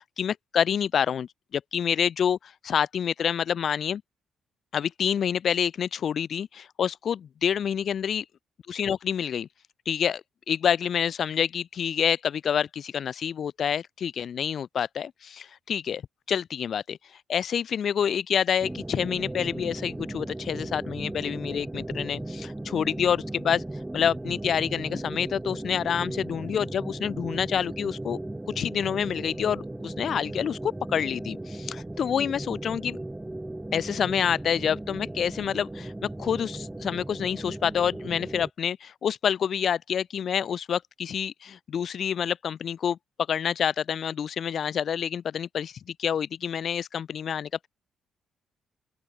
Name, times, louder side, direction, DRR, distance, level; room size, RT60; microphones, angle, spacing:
voice 1, 0.0-4.0 4.7-8.2 8.7-9.5 9.8-16.0 16.3-17.0 17.3-28.2 28.5-33.0 33.7-35.9 36.2-43.0 43.3-47.7, left 8 dB, 55° left, 1.5 m, -28 dB
sound 1, 18.6-38.5, right 1 dB, 10° right, 6.0 m, -37 dB
open air
cardioid pair, 90°, 0 cm